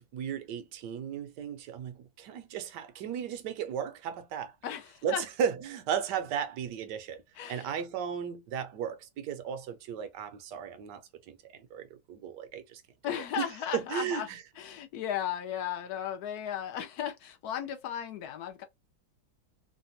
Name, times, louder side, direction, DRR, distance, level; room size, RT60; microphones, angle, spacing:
voice 1, 0.0-4.6 5.0-7.2 7.5-12.8 13.3-13.5 13.7-14.4, right 8 dB, 70° right, 1.1 m, -35 dB
voice 2, 4.6-5.2 7.4-7.7 13.0-14.3 14.6-18.6, left 10 dB, 70° left, 1.0 m, -35 dB
3.3 x 2.1 x 2.7 m
omnidirectional pair, 2.1 m